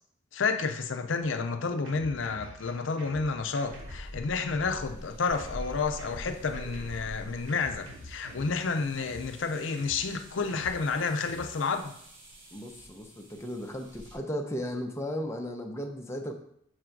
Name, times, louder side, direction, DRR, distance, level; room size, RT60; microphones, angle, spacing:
voice 1, 0.3-11.9, left 4 dB, 70° left, 8 dB, 0.6 m, -30 dB
Drum kit, 1.7-11.5, equal, 65° right, 2.6 m, -47 dB
sound 1, 3.6-14.2, equal, 90° right, 2.1 m, -46 dB
voice 2, 12.5-16.3, equal, 15° left, 2 dB, 0.7 m, -35 dB
6.5 x 3.8 x 4.6 m, 0.70 s
head